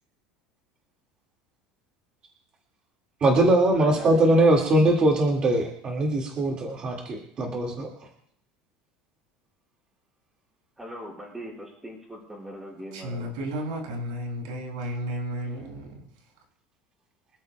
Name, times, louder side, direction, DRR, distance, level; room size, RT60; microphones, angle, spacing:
voice 1, 3.2-7.9, right 1 dB, 30° right, 0 dB, 1.9 m, -21 dB
voice 2, 3.7-4.4 10.8-13.3, equal, 5° right, -2 dB, 5.1 m, -40 dB
voice 3, 12.9-15.9, equal, 85° right, 1 dB, 6.4 m, -33 dB
25.5 x 13.5 x 2.2 m, 0.68 s
cardioid pair, 150°, 4 cm